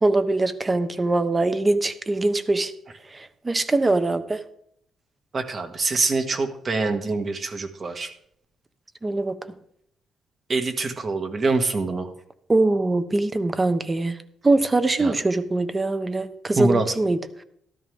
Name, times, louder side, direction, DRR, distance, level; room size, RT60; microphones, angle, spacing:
voice 1, 0.0-2.7 3.1-4.4 9.0-9.5 12.5-14.2 14.4-17.2, right 2 dB, 25° right, 11 dB, 1.1 m, -22 dB
voice 2, 5.3-8.1 10.5-12.1 15.0-15.1 16.6-16.9, right 3 dB, 45° right, 5 dB, 2.0 m, -24 dB
13.0 x 13.0 x 3.6 m, 0.71 s
cardioid pair, 90°, 0 cm